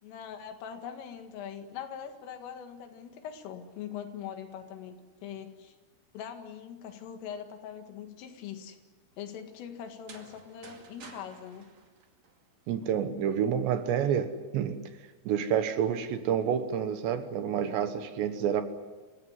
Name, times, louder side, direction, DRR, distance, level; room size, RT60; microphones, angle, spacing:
voice 1, 0.0-5.8 6.1-8.8 9.2-11.7, left 8 dB, 85° left, 4.5 m, -42 dB
sound 1, 9.9-12.8, right 4 dB, 40° right, 2.7 m, -52 dB
voice 2, 12.7-14.8 15.3-18.6, right 8 dB, 70° right, 3.2 m, -28 dB
27.5 x 16.5 x 9.6 m
omnidirectional pair, 5.6 m